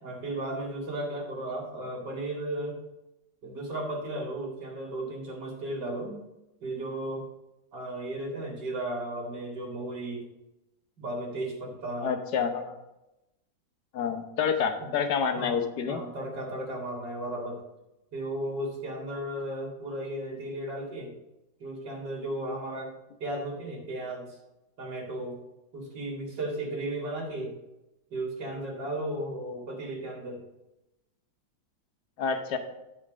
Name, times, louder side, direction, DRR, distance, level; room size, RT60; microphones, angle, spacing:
voice 1, 0.0-2.8 3.4-6.2 6.6-7.3 7.7-10.3 11.0-12.1 14.8-14.9 15.4-15.6 15.9-17.6 18.1-21.1 21.6-22.9 23.2-24.4 24.8-25.4 25.7-27.5 28.1-30.4, right 1 dB, 65° right, -1 dB, 2.8 m, -35 dB
voice 2, 12.0-12.7 13.9-16.0 32.2-32.6, left 6 dB, 65° left, 6 dB, 1.4 m, -28 dB
11.0 x 4.4 x 4.9 m, 0.94 s
omnidirectional pair, 2.0 m